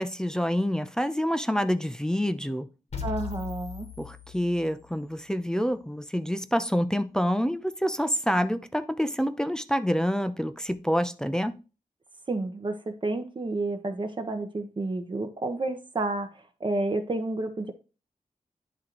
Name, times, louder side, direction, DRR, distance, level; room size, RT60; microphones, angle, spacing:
voice 1, 0.0-2.7 4.0-11.6, equal, 5° left, 0.4 m, -27 dB
sound 1, 2.9-5.0, left 8 dB, 50° left, 1.2 m, -38 dB
voice 2, 3.0-3.9 12.3-17.7, right 2 dB, 35° right, 0.8 m, -30 dB
10.5 x 3.7 x 3.0 m
wide cardioid pair, 150°, 14 cm